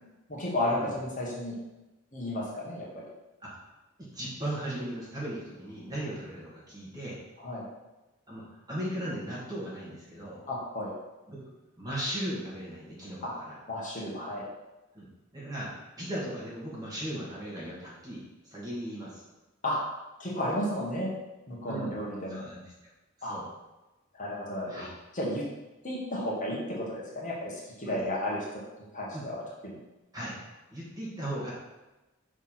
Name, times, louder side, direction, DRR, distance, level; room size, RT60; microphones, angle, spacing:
voice 1, 0.3-1.6 2.1-2.9 7.4-7.6 10.5-10.9 13.2-13.3 13.7-14.4 19.6-19.8 20.2-21.1 21.5-22.4 23.2-23.4 24.1-24.8 25.1-25.5 25.8-28.4 28.9-29.8, left 1 dB, 40° left, -4 dB, 1.4 m, -33 dB
voice 2, 4.0-7.2 8.3-10.4 11.3-11.4 11.8-13.5 14.9-15.1 15.3-15.7 16.0-18.2 18.5-19.2 21.7-21.9 22.3-22.6 23.2-23.4 24.7-24.9 27.8-28.0 29.1-29.3 30.1-30.3 30.7-31.5, right 1 dB, 20° right, -6 dB, 2.0 m, -37 dB
5.9 x 3.6 x 5.7 m, 1.0 s
head